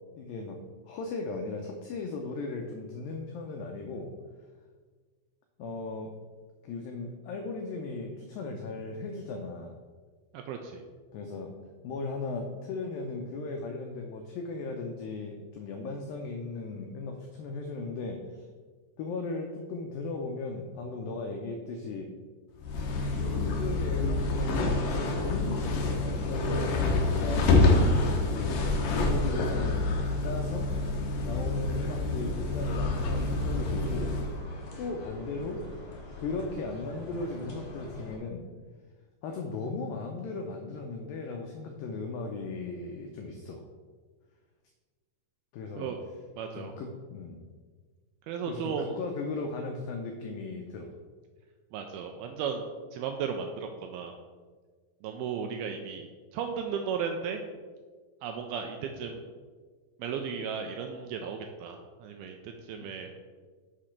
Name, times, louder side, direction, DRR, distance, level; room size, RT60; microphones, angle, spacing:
voice 1, 0.1-4.1 5.6-6.1 6.6-9.7 11.1-11.6 11.8-18.4 19.0-22.1 23.4-27.7 28.2-30.7 31.2-34.4 34.8-35.7 36.2-38.5 39.2-43.6 45.5-45.9 46.5-47.4 48.5-50.9, left 3 dB, 90° left, 3 dB, 2.0 m, -37 dB
voice 2, 10.3-10.8 45.8-46.0 46.4-46.7 48.3-49.0 51.7-52.6 52.9-54.1 55.0-57.4 58.2-59.2 60.0-63.1, right 6 dB, 85° right, 4 dB, 2.2 m, -35 dB
sound 1, 22.6-34.3, left 2 dB, 75° left, 1.9 m, -27 dB
sound 2, 32.9-38.2, left 2 dB, 55° left, 2.4 m, -43 dB
6.4 x 5.0 x 5.8 m, 1.5 s
omnidirectional pair, 4.9 m